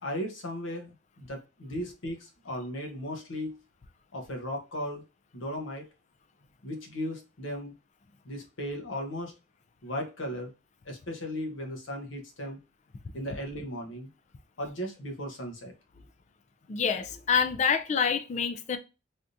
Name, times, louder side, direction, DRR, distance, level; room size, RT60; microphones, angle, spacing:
voice 1, 0.0-3.6 4.1-5.0 5.3-5.9 6.6-7.7 8.2-9.3 9.8-10.5 10.8-12.6 13.1-14.1 14.6-15.7, equal, 75° left, 0.9 m, -36 dB
voice 2, 16.7-18.8, left 6 dB, 35° left, 0.3 m, -27 dB
3.4 x 2.7 x 2.5 m
head